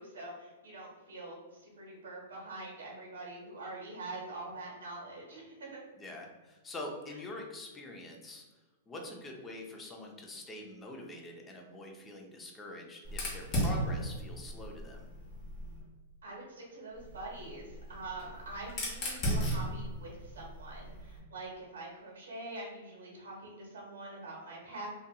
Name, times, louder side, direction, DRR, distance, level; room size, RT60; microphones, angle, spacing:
voice 1, 0.0-5.8 16.2-24.9, right 2 dB, 90° right, -3 dB, 1.0 m, -45 dB
voice 2, 6.0-8.5 8.9-15.1, left 1 dB, 15° left, 1 dB, 0.5 m, -45 dB
Fire, 13.0-15.8 17.0-21.2, equal, 35° left, 0.9 m, -36 dB
2.7 x 2.6 x 2.2 m, 1.2 s
hypercardioid pair, 135°, 0 cm